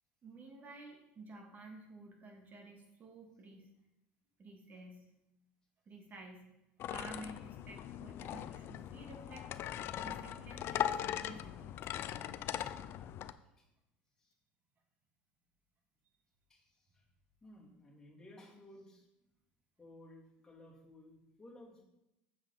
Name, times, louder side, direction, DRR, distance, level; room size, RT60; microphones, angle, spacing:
voice 1, 0.2-3.7 4.4-5.1 5.9-6.5 6.9-11.8, right 2 dB, 35° right, 3 dB, 2.0 m, -52 dB
sound 1, 6.8-13.3, left 11 dB, 50° left, 0.5 m, -40 dB
voice 2, 16.5-17.0 17.4-19.0 19.8-21.8, left 1 dB, 10° left, -4 dB, 3.2 m, -57 dB
7.9 x 7.5 x 4.1 m, 0.90 s
supercardioid pair, 100°, 5 cm